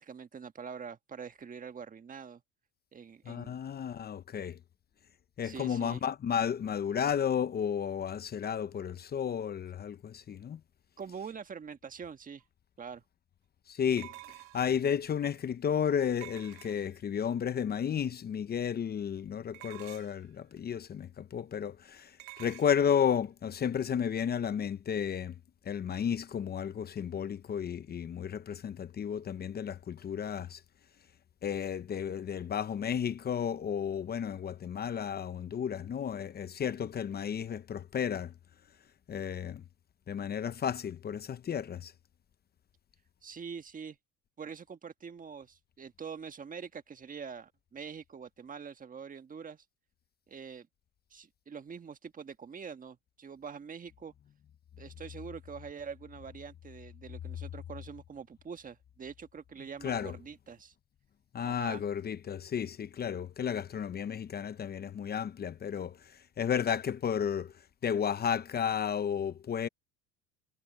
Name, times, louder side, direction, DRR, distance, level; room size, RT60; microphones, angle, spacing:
voice 1, 0.0-2.4 2.9-3.6 5.4-6.0 11.0-12.4 12.8-13.0 43.2-44.0 44.4-49.6 50.3-50.7 51.1-54.1 54.8-60.7 61.4-61.8, right 6 dB, 25° right, 1.4 m, -44 dB
voice 2, 3.3-4.6 5.4-10.6 13.7-14.1 14.5-25.4 25.6-30.6 31.4-38.3 39.1-39.6 40.1-41.9 59.8-60.1 61.3-66.0 66.4-67.5 67.8-69.7, left 8 dB, 25° left, 0.7 m, -33 dB
sound 1, 12.4-12.5 14.0-14.8 16.2-17.1 19.5-20.3 22.2-22.7, right 20 dB, 80° right, 1.3 m, -49 dB
supercardioid pair, 115°, 35 cm